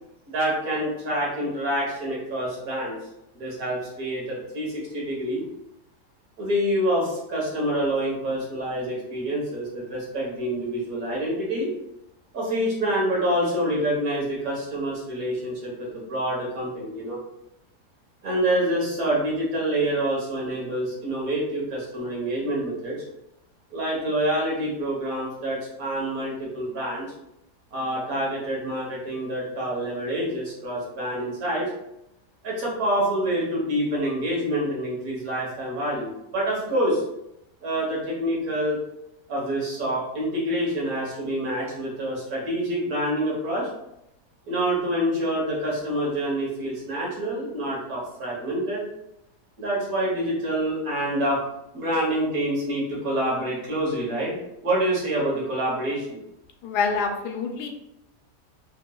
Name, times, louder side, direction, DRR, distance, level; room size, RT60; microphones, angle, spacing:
voice 1, 0.3-2.9 3.3-5.4 6.4-11.7 12.3-17.2 18.2-23.0 23.7-27.1 27.7-31.7 32.4-37.0 37.6-38.8 39.3-43.7 44.4-48.8 49.6-51.4 51.7-54.3 54.6-56.2, right 1 dB, 65° right, -4 dB, 1.6 m, -27 dB
voice 2, 56.6-57.7, left 5 dB, 80° left, 4 dB, 1.2 m, -26 dB
4.3 x 2.9 x 2.3 m, 0.84 s
omnidirectional pair, 1.7 m